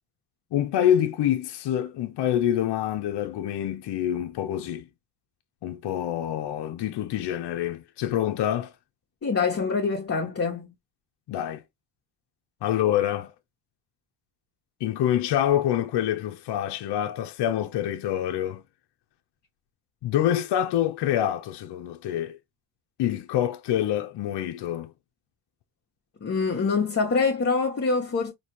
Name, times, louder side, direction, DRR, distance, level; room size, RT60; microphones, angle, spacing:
voice 1, 0.5-4.8 5.6-8.7 11.3-11.6 12.6-13.3 14.8-18.6 20.0-22.4 23.0-24.9, left 11 dB, 65° left, 0.9 m, -26 dB
voice 2, 9.2-10.7 26.2-28.3, left 4 dB, 35° left, 1.3 m, -25 dB
4.2 x 3.1 x 3.0 m
cardioid pair, 85°, 44 cm